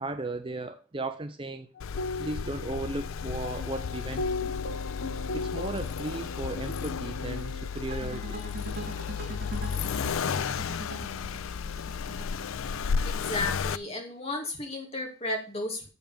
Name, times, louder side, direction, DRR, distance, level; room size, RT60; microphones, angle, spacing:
voice 1, 0.0-1.7 2.2-4.5 5.3-8.4, right 2 dB, 25° right, 8 dB, 0.5 m, -36 dB
Accelerating revving vroom, 1.8-13.8, left 6 dB, 85° left, 0.4 m, -33 dB
sound 1, 1.8-7.7, left 3 dB, 55° left, 0.9 m, -37 dB
sound 2, 7.9-13.0, right 2 dB, 45° right, 2.6 m, -42 dB
voice 2, 13.0-15.9, left 2 dB, 30° left, 1 dB, 2.2 m, -33 dB
7.5 x 5.4 x 6.9 m, 0.36 s
head